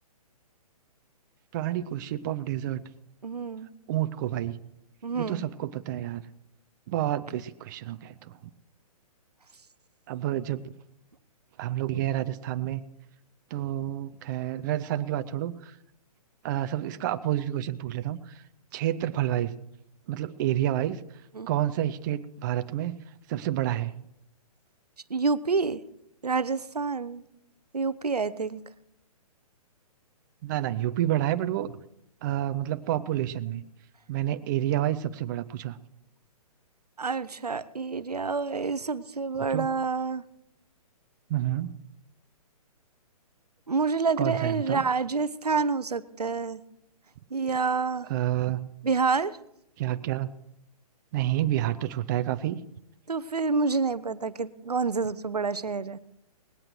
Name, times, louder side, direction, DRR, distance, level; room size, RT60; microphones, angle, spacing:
voice 1, 1.5-2.8 3.9-4.6 5.1-6.2 6.9-8.3 10.1-10.7 11.6-12.8 13.5-15.8 16.4-18.4 18.7-19.5 20.1-21.0 21.5-23.0 23.3-23.9 30.4-31.8 32.2-33.6 34.1-35.8 39.5-39.7 41.3-41.7 44.2-44.8 48.1-48.7 49.8-50.3 51.1-52.6, right 13 dB, 30° right, 12 dB, 0.5 m, -29 dB
voice 2, 3.2-3.7 5.0-5.4 21.4-21.5 25.1-25.8 26.2-27.2 27.7-28.6 37.0-40.2 43.7-46.6 47.3-48.1 48.8-49.4 53.1-56.0, right 4 dB, 85° right, 16 dB, 0.7 m, -28 dB
19.0 x 17.5 x 3.2 m, 0.78 s
figure-of-eight pair, 125°, 20 cm